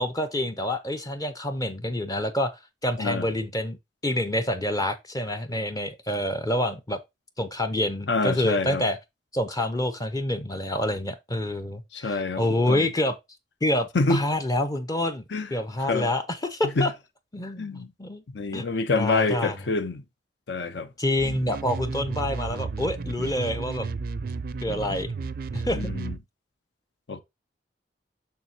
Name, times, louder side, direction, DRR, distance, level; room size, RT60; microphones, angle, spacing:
voice 1, 0.0-3.8 4.0-7.0 7.4-9.0 9.3-13.2 13.6-15.2 15.5-16.9 17.3-18.2 18.5-18.7 18.9-19.6 21.0-23.9 24.6-25.1 25.5-25.9, left 1 dB, 20° left, 0.5 m, -27 dB
voice 2, 3.0-3.3 8.1-8.8 11.9-12.9 13.9-14.2 15.3-15.5 15.9-16.1 16.6-16.9 17.6-17.9 18.3-20.0 20.5-20.9 25.7-26.2 27.1-27.2, left 3 dB, 75° left, 0.7 m, -26 dB
sound 1, 21.2-26.2, right 4 dB, 55° right, 0.4 m, -33 dB
6.8 x 6.3 x 2.8 m
head